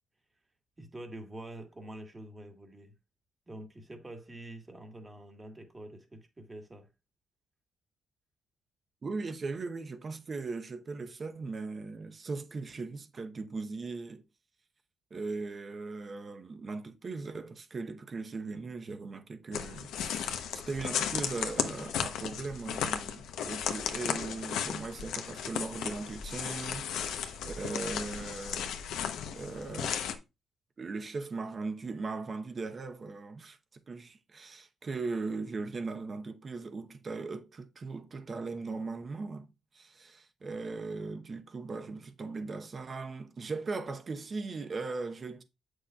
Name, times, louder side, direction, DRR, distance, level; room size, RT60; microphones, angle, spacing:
voice 1, 0.8-2.9 3.5-6.9, right 1 dB, 20° right, 1.6 m, -46 dB
voice 2, 9.0-14.2 15.1-29.1 29.3-30.0 30.8-45.4, right 3 dB, 40° right, 0.9 m, -39 dB
sound 1, 19.5-30.2, left 8 dB, 85° left, 0.8 m, -35 dB
7.8 x 6.4 x 2.3 m
cardioid pair, 90°, 0 cm